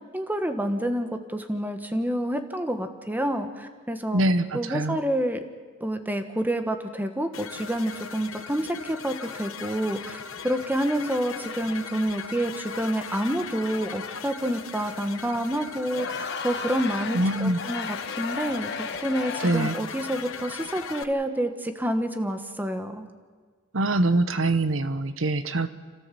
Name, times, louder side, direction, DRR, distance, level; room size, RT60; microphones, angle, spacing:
voice 1, 0.1-4.2 4.5-5.4 5.8-23.1, right 1 dB, 10° right, 7 dB, 1.4 m, -28 dB
voice 2, 4.1-5.0 17.1-17.6 19.4-19.7 23.7-25.7, right 2 dB, 70° right, 12 dB, 0.9 m, -24 dB
sound 1, 7.3-21.0, left 6 dB, 85° left, 1.2 m, -38 dB
Crowd, 15.8-20.0, left 5 dB, 60° left, 1.3 m, -35 dB
29.5 x 14.0 x 7.7 m, 1.6 s
head